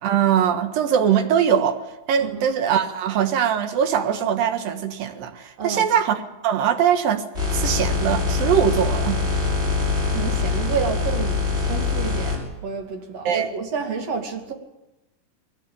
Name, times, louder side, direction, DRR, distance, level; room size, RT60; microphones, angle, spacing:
voice 1, 0.0-1.8 2.1-7.3 7.5-9.2 13.3-13.5, right 8 dB, 80° right, 3.4 m, -21 dB
voice 2, 5.6-5.9 10.1-14.5, right 6 dB, 50° right, 3.5 m, -30 dB
sound 1, 7.3-12.4, left 4 dB, 15° right, 7.0 m, -23 dB
22.5 x 16.0 x 8.9 m
omnidirectional pair, 4.0 m